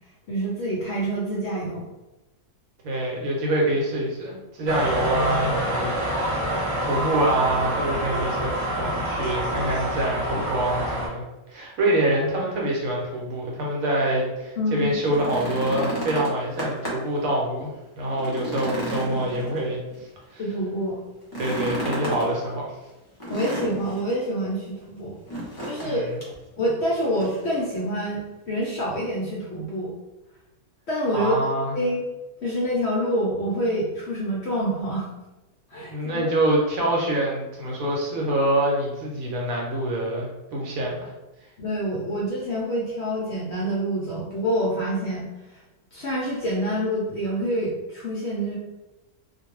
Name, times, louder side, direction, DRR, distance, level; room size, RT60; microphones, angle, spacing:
voice 1, 0.3-1.8 14.6-14.9 20.4-21.0 23.3-25.2 25.6-26.1 26.6-28.2 28.5-29.9 30.9-31.4 31.7-32.0 32.4-35.1 35.7-36.3 41.6-45.2 45.9-48.6, equal, 65° left, -5 dB, 0.7 m, -26 dB
voice 2, 2.8-6.4 6.8-11.2 11.5-19.8 20.3-20.4 21.4-22.7 25.8-26.0 31.1-31.7 35.9-41.1, right 1 dB, 70° right, -2 dB, 1.1 m, -25 dB
sound 1, 4.7-11.1, right 1 dB, 30° right, 0.8 m, -26 dB
sound 2, 14.9-17.2 17.6-17.7 18.1-20.0 21.2-22.3 23.2-24.1 25.3-25.9 26.2-26.3 26.9-27.5 28.6-28.7, right 1 dB, 25° left, 0.5 m, -32 dB
2.5 x 2.2 x 3.1 m, 1.0 s
omnidirectional pair, 1.6 m